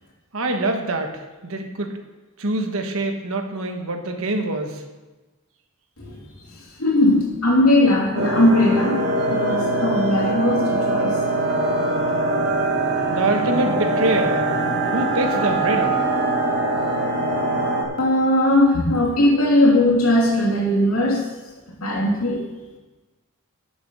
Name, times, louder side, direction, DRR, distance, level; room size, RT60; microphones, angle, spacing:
voice 1, 0.3-1.9 2.4-4.8 13.1-14.4 14.9-16.0, right 2 dB, 70° right, 5 dB, 1.3 m, -24 dB
voice 2, 6.8-11.2 18.0-21.3 21.8-22.4, left 1 dB, 80° left, -2 dB, 2.8 m, -19 dB
sound 1, 8.1-17.8, right 2 dB, 55° right, 2.4 m, -22 dB
10.0 x 7.0 x 6.2 m, 1.2 s
head